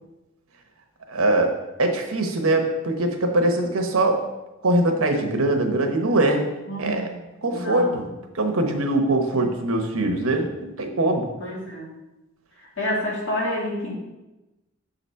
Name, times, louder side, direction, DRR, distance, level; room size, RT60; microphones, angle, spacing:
voice 1, 1.1-1.5 1.8-4.2 4.6-6.4 6.8-7.0 7.4-8.0 8.3-10.5 10.8-11.2, right 2 dB, 75° right, 4 dB, 1.0 m, -22 dB
voice 2, 6.7-7.2 7.5-8.0 11.4-11.9 12.8-13.9, left 1 dB, 60° left, -4 dB, 2.2 m, -28 dB
7.0 x 4.0 x 5.5 m, 1.0 s
head